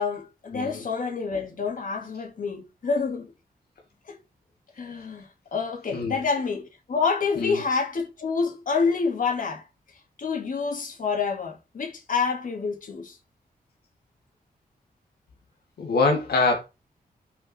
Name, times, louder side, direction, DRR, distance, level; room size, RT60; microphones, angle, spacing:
voice 1, 0.0-3.3 4.1-4.2 4.8-5.2 5.5-9.6 10.2-13.2, left 5 dB, 60° left, 2.7 m, -27 dB
voice 2, 0.5-0.8 5.9-6.2 7.4-7.6 15.8-16.6, left 3 dB, 90° left, 2.3 m, -24 dB
6.7 x 5.6 x 4.5 m
wide cardioid pair, 120°, 16 cm